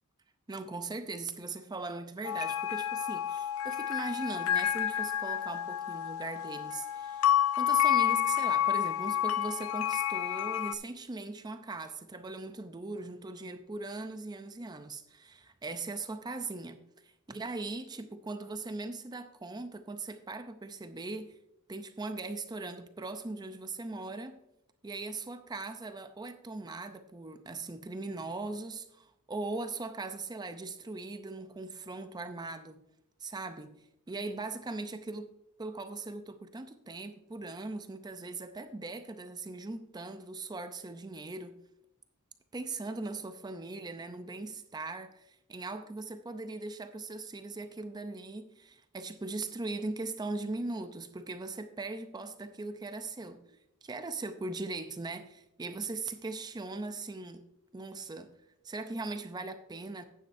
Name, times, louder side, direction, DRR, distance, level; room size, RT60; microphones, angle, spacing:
voice 1, 0.5-21.3 21.7-24.4 24.8-32.8 33.2-35.3 35.6-41.6 42.5-57.4 57.7-58.3 58.6-60.0, right 3 dB, 20° right, 0.5 m, -40 dB
sound 1, 2.2-10.8, left 11 dB, 70° left, 0.5 m, -30 dB
11.5 x 9.2 x 2.6 m
head